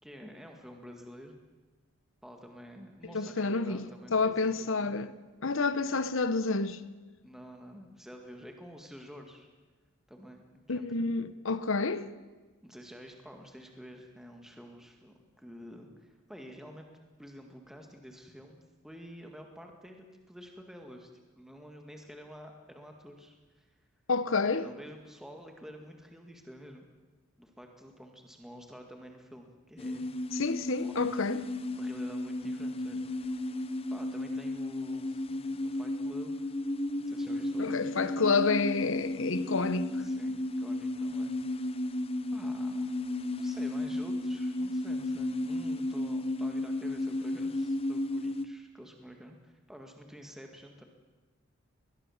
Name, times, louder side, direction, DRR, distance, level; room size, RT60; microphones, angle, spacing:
voice 1, 0.0-1.4 2.2-5.0 7.2-9.5 10.1-11.1 12.6-16.9 17.2-21.1 21.4-23.7 24.6-26.9 27.4-30.4 30.8-31.1 31.8-33.5 33.9-36.5 36.9-37.8 40.0-41.9 42.3-43.0 43.4-50.8, equal, ahead, 2.0 m, -49 dB
voice 2, 3.1-5.1 5.4-6.8 10.7-12.1 24.1-24.6 30.3-31.4 37.6-40.0, left 4 dB, 60° left, 1.0 m, -29 dB
sound 1, 29.8-48.5, left 1 dB, 25° left, 0.7 m, -33 dB
21.5 x 20.0 x 7.3 m
head